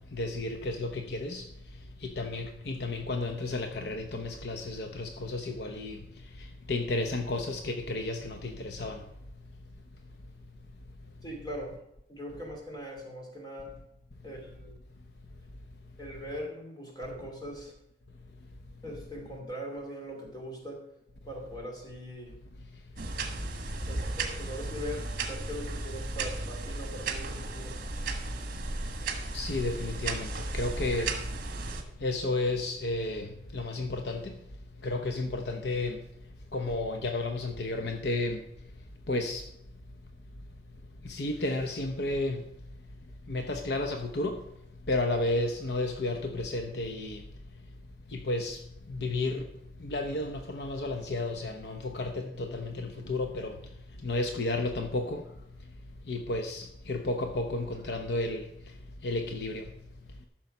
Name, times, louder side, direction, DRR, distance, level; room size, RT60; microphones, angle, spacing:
voice 1, 0.1-1.4 2.0-6.0 6.7-9.0 29.3-31.1 32.0-34.3 34.8-36.0 36.5-38.4 39.1-39.4 41.0-42.4 43.3-44.4 44.9-47.2 48.1-48.6 48.9-49.5 49.8-53.6 54.0-55.2 56.1-58.4 59.0-59.6, left 2 dB, 65° left, 0.8 m, -32 dB
voice 2, 11.2-11.8 12.1-13.7 14.2-14.9 16.0-17.7 18.8-20.8 21.2-22.4 23.9-27.8, equal, 25° left, 2.7 m, -41 dB
sound 1, 23.0-31.8, right 3 dB, 50° right, 1.4 m, -35 dB
13.5 x 6.3 x 5.4 m
head